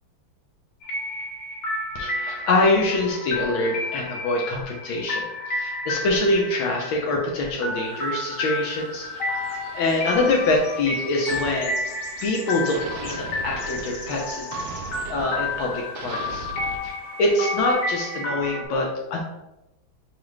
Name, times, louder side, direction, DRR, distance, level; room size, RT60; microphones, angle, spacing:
sound 1, 0.8-18.7, left 2 dB, 45° left, 1.2 m, -31 dB
voice 1, 1.9-11.8 12.2-14.5 15.1-16.5 16.8-16.9 17.2-19.2, left 2 dB, 75° left, -1 dB, 1.4 m, -25 dB
sound 2, 7.7-18.2, left 1 dB, 30° left, 0.4 m, -46 dB
sound 3, 8.8-12.4 12.7-16.8, right 5 dB, 75° right, 1.1 m, -40 dB
5.8 x 2.4 x 3.1 m, 0.95 s
omnidirectional pair, 2.3 m